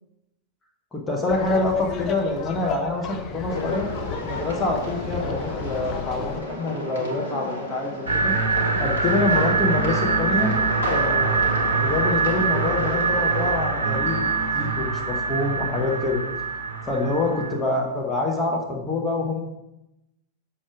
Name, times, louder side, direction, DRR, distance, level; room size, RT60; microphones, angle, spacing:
voice 1, 0.9-3.9 4.2-8.3 8.8-10.6 10.9-11.5 11.8-16.2 16.9-19.4, left 2 dB, 15° left, -1 dB, 1.2 m, -26 dB
Laughter, 1.3-6.4, left 5 dB, 35° left, 0.7 m, -33 dB
sound 1, 3.5-13.5, left 1 dB, 75° left, 1.3 m, -33 dB
sound 2, 8.1-17.6, right 4 dB, 65° right, 0.9 m, -24 dB
6.1 x 4.6 x 4.9 m, 0.90 s
figure-of-eight pair, 90°, 0 cm